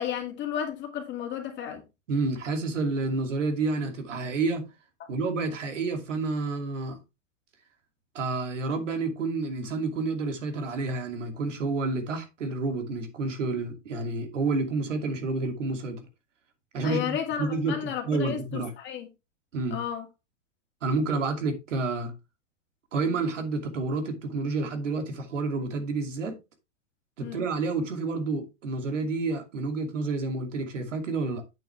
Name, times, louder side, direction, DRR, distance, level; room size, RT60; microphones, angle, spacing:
voice 1, 0.0-1.8 5.0-5.1 16.8-19.1 19.7-20.1 27.2-27.4, left 9 dB, 30° left, 2.3 m, -33 dB
voice 2, 2.1-4.6 5.1-7.0 8.1-16.1 16.7-18.7 19.5-19.8 20.8-22.1 22.9-26.4 27.2-31.4, right 3 dB, 75° right, 2.6 m, -29 dB
8.5 x 6.8 x 3.3 m
hypercardioid pair, 120°, 37 cm